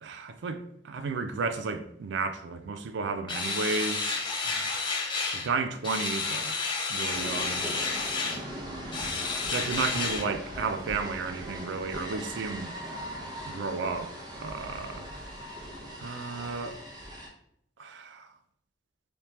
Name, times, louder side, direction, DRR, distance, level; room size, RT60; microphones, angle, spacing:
voice 1, 0.0-5.0 5.3-6.5 6.9-7.7 8.6-9.1 9.4-12.7 13.4-15.1 16.0-16.8 17.8-18.3, right 4 dB, 65° right, 0.3 m, -33 dB
sound 1, 3.3-5.5 5.8-8.4 8.9-10.2, left 4 dB, 25° left, 0.5 m, -31 dB
sound 2, 7.1-17.3, equal, 20° right, 0.7 m, -40 dB
3.4 x 2.8 x 2.9 m
head